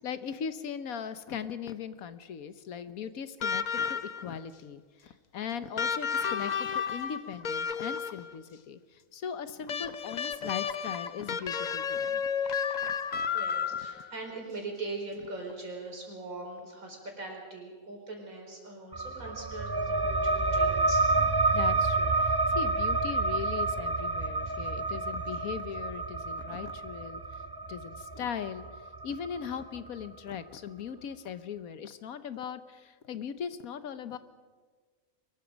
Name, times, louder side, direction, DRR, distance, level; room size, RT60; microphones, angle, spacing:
voice 1, 0.0-12.3 12.8-13.3 21.5-27.4 27.7-28.6 29.0-34.2, left 7 dB, 85° left, 12 dB, 1.4 m, -39 dB
sound 1, 3.4-4.4 5.8-8.3 9.7-14.1 15.5-15.6, left 7 dB, 45° left, 0.6 m, -32 dB
voice 2, 13.3-21.0, right 2 dB, 75° right, 0 dB, 5.0 m, -41 dB
sound 2, 18.9-30.1, right 3 dB, 30° right, 0.4 m, -29 dB
23.5 x 21.0 x 5.2 m, 1.5 s
omnidirectional pair, 1.5 m